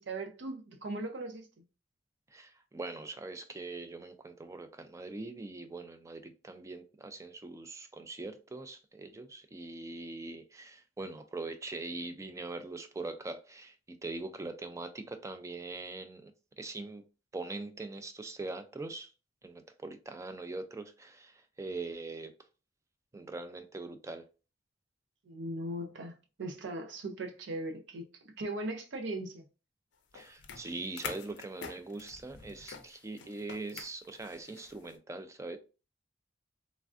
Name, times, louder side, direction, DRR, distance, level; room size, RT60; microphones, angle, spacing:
voice 1, 0.0-1.5 25.3-26.1 26.4-28.0 28.4-29.4, right 2 dB, 70° right, 0.5 m, -38 dB
voice 2, 2.3-13.7 14.0-16.3 16.6-17.0 17.3-19.1 19.4-22.3 23.1-24.2 30.1-35.6, right 3 dB, 15° right, 0.3 m, -42 dB
sound 1, 30.1-35.0, left 6 dB, 65° left, 0.4 m, -46 dB
3.2 x 2.4 x 2.4 m
head